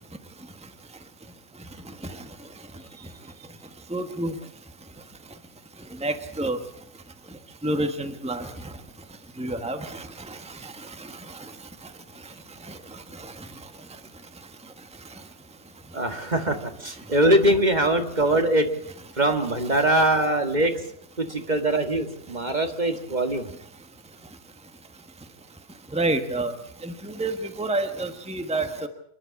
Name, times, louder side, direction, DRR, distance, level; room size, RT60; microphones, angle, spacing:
voice 1, 3.9-4.3 6.0-6.6 7.6-8.5 9.4-10.0 25.9-26.5 26.8-28.9, right 2 dB, 5° right, 7 dB, 1.4 m, -28 dB
voice 2, 15.9-18.7 19.2-20.7 21.2-23.5, right 1 dB, 40° right, 6 dB, 1.8 m, -22 dB
27.5 x 11.0 x 8.6 m, 0.70 s
omnidirectional pair, 1.2 m